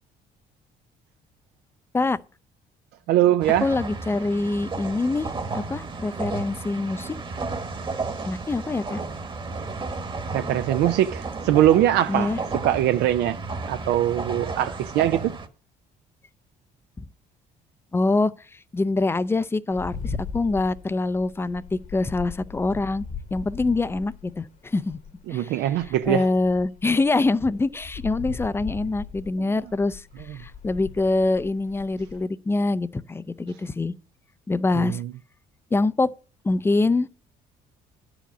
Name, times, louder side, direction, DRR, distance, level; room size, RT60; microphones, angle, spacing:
voice 1, 3.1-3.7 10.3-13.4 13.7-15.3 25.3-26.3 29.4-29.5 34.8-35.1, right 12 dB, 80° right, 0.5 m, -22 dB
sound 1, 3.4-15.5, right 3 dB, 30° right, 1.2 m, -33 dB
voice 2, 3.6-7.2 8.2-9.0 12.1-12.4 17.9-18.3 18.7-23.0 23.3-25.0 25.3-25.5 26.1-30.0 30.3-33.9 34.5-35.0 35.7-36.1 36.4-37.1, left 3 dB, 15° left, 0.4 m, -24 dB
sound 2, 19.7-25.2 25.7-32.2, left 6 dB, 50° left, 1.2 m, -38 dB
10.0 x 5.0 x 8.0 m
cardioid pair, 110°, 17 cm